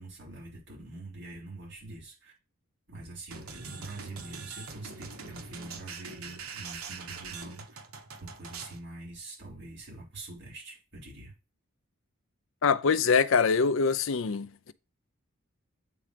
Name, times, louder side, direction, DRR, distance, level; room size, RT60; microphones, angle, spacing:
voice 1, 0.0-2.3 2.9-7.8 8.2-11.3, right 2 dB, 55° right, 4.2 m, -44 dB
sound 1, 3.3-8.8, right 5 dB, 80° right, 1.3 m, -43 dB
voice 2, 12.6-14.7, left 5 dB, 60° left, 0.5 m, -24 dB
8.6 x 3.9 x 5.1 m
head